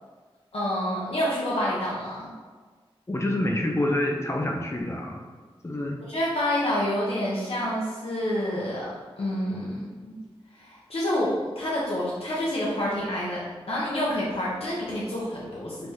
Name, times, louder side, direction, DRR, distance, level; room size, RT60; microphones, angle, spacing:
voice 1, 0.5-2.3 6.0-8.9 9.2-10.1 10.5-15.9, left 1 dB, 75° left, -7 dB, 0.7 m, -28 dB
voice 2, 3.1-5.2 5.6-6.0, left 1 dB, 25° left, 1 dB, 0.4 m, -27 dB
3.4 x 3.2 x 2.7 m, 1.4 s
wide cardioid pair, 65°, 10 cm